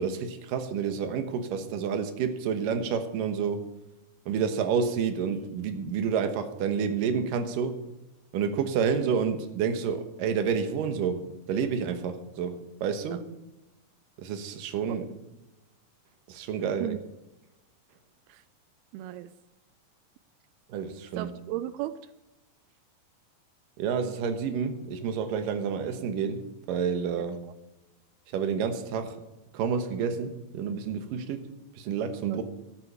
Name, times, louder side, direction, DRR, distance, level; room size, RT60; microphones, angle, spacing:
voice 1, 0.0-3.6 4.3-7.8 8.3-13.3 14.2-15.1 16.3-17.0 20.7-21.3 23.8-27.4 28.3-29.2 29.5-31.5 31.7-32.4, right 6 dB, 70° right, 7 dB, 2.7 m, -29 dB
voice 2, 18.9-19.3 21.2-22.0 27.1-27.2 32.2-32.4, right 14 dB, 90° right, 12 dB, 2.5 m, -35 dB
14.0 x 9.1 x 6.8 m, 0.99 s
omnidirectional pair, 4.3 m